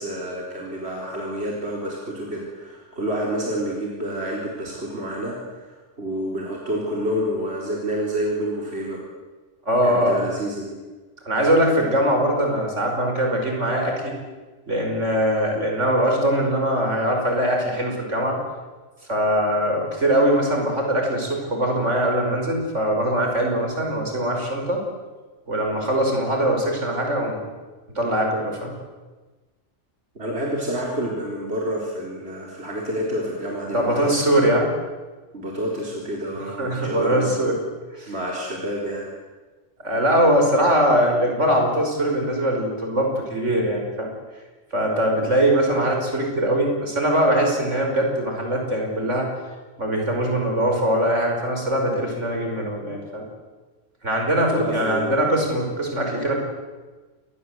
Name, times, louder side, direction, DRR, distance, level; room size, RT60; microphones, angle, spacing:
voice 1, 0.0-9.0 9.8-10.8 30.1-34.3 35.3-37.3 38.1-39.1 54.5-55.3, equal, 55° right, -2 dB, 4.5 m, -28 dB
voice 2, 9.7-10.2 11.3-14.1 14.7-18.4 19.1-24.8 25.5-27.5 28.0-28.7 33.7-34.7 36.6-37.6 37.9-38.1 39.8-44.1 44.7-49.3 49.8-53.3 54.0-56.4, equal, 75° right, 1 dB, 5.9 m, -22 dB
27.5 x 21.0 x 8.1 m, 1.3 s
omnidirectional pair, 1.3 m